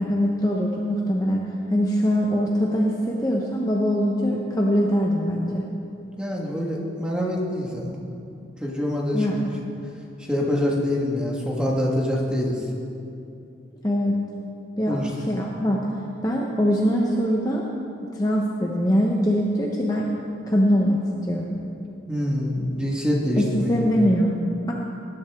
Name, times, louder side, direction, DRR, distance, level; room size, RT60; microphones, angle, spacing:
voice 1, 0.0-1.4 1.7-5.6 9.1-9.5 13.8-14.1 14.8-15.8 16.2-17.6 18.1-20.1 20.5-21.0 21.3-21.6 23.4-24.7, equal, 20° left, -2 dB, 0.9 m, -22 dB
voice 2, 6.2-8.0 8.6-9.5 10.3-12.5 14.9-15.1 22.1-23.7, left 1 dB, 5° right, -3 dB, 1.6 m, -25 dB
19.5 x 10.5 x 3.6 m, 2.7 s
head